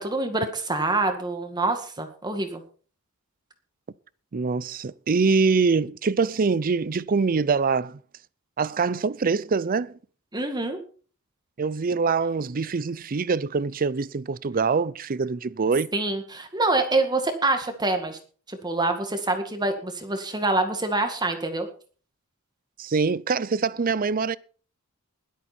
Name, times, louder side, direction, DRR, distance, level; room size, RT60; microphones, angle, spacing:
voice 1, 0.0-2.6 10.3-10.8 15.9-18.2 18.5-21.7, right 2 dB, 20° right, 2.0 m, -26 dB
voice 2, 4.3-8.0 8.6-10.0 11.6-15.9 22.8-24.4, right 4 dB, 40° right, 0.5 m, -24 dB
21.0 x 8.4 x 4.4 m
head